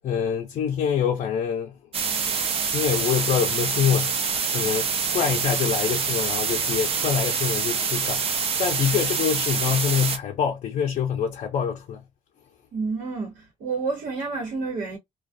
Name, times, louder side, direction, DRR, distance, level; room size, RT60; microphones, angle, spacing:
voice 1, 0.0-1.8 2.7-12.0, left 8 dB, 60° left, 0.5 m, -25 dB
sound 1, 1.9-10.2, right 6 dB, 45° right, 0.5 m, -26 dB
voice 2, 12.7-15.0, right 4 dB, 85° right, 1.0 m, -29 dB
2.3 x 2.2 x 2.5 m
cardioid pair, 150°, 14 cm